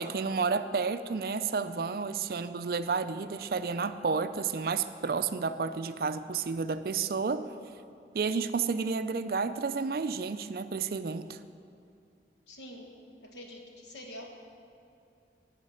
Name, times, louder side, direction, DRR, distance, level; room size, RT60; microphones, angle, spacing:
voice 1, 0.0-7.5 8.1-11.4, right 5 dB, 55° right, 11 dB, 0.4 m, -31 dB
voice 2, 12.5-12.9 13.2-14.3, left 1 dB, 80° left, 1 dB, 1.6 m, -46 dB
12.0 x 5.1 x 8.7 m, 2.5 s
head